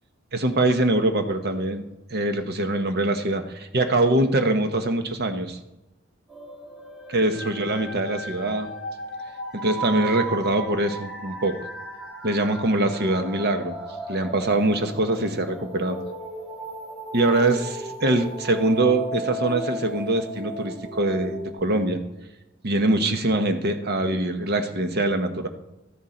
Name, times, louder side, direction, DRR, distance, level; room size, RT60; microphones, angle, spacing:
voice 1, 0.3-1.8 2.1-5.6 7.1-8.7 9.6-11.6 12.2-13.8 14.1-16.0 17.1-22.0 22.6-25.5, right 2 dB, 50° right, 7 dB, 1.0 m, -23 dB
sound 1, 6.3-21.5, right 1 dB, ahead, 2.0 m, -35 dB
13.0 x 10.5 x 4.3 m, 0.97 s
head